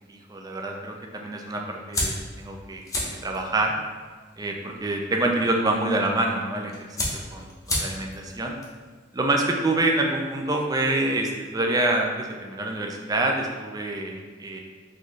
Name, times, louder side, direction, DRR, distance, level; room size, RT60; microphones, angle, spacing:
voice 1, 0.1-2.8 3.2-3.8 4.4-6.7 7.3-8.5 9.1-14.6, right 2 dB, 20° right, 1 dB, 0.4 m, -26 dB
sound 1, 1.9-10.4, left 1 dB, 20° left, 0.6 m, -35 dB
3.9 x 2.6 x 3.1 m, 1.5 s
head